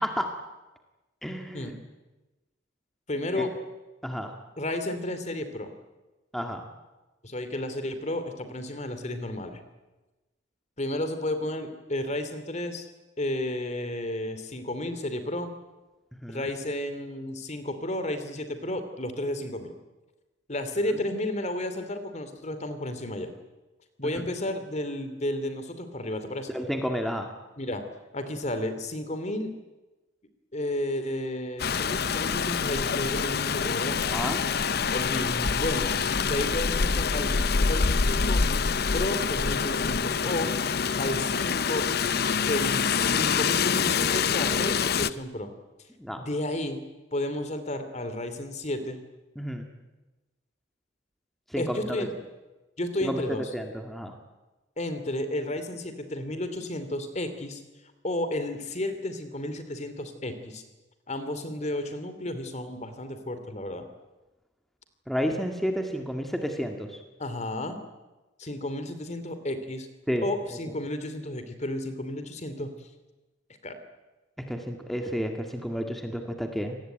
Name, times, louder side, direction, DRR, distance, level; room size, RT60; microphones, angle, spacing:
voice 1, 1.2-1.8 3.4-3.5 4.0-4.3 6.3-6.6 16.2-16.5 24.0-24.2 26.5-27.3 34.0-34.5 46.0-46.2 49.4-49.7 51.5-52.1 53.0-53.2 53.5-54.1 65.1-67.0 70.1-70.2 74.4-76.8, equal, ahead, 4 dB, 1.9 m, -31 dB
voice 2, 3.1-3.5 4.6-5.7 7.2-9.6 10.8-12.9 13.2-15.5 16.3-19.7 20.5-23.3 24.0-26.5 27.6-27.8 28.1-29.5 30.5-34.0 34.9-35.9 36.2-37.3 37.6-38.4 38.9-40.5 41.0-41.9 42.3-45.5 46.2-46.8 47.1-49.0 51.6-52.1 52.8-53.4 54.8-57.6 58.0-60.6 61.1-63.9 67.2-67.8 68.4-69.9 70.2-72.9 73.6-73.8, left 1 dB, 35° left, 9 dB, 2.8 m, -32 dB
Rain, 31.6-45.1, left 5 dB, 55° left, 0.8 m, -26 dB
27.0 x 19.0 x 9.2 m, 1.1 s
head